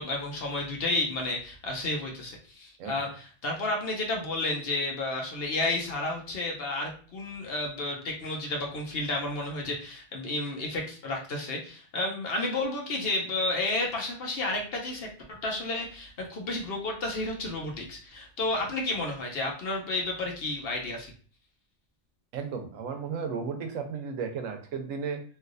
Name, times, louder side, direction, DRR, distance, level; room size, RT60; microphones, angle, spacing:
voice 1, 0.0-21.1, left 2 dB, 55° left, 0 dB, 0.8 m, -31 dB
voice 2, 22.3-25.2, right 6 dB, 85° right, 6 dB, 1.0 m, -34 dB
3.2 x 2.6 x 2.5 m, 0.42 s
omnidirectional pair, 1.3 m